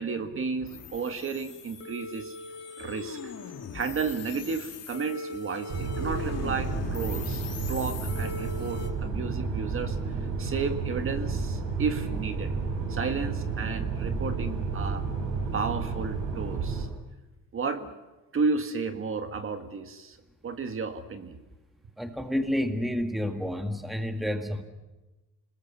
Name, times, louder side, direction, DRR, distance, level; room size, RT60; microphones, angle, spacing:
voice 1, 0.0-3.3 3.7-7.4 7.7-12.5 12.9-15.1 15.5-16.9 17.5-17.9 18.3-20.2 20.4-21.4, right 5 dB, 40° right, 7 dB, 1.8 m, -33 dB
sound 1, 0.6-8.9, left 4 dB, 50° left, 2.6 m, -40 dB
sound 2, 5.7-16.8, right 4 dB, 65° right, 5.9 m, -31 dB
voice 2, 22.0-24.6, left 1 dB, ahead, 6 dB, 1.7 m, -29 dB
27.5 x 20.5 x 7.3 m, 1.1 s
cardioid pair, 130°, 34 cm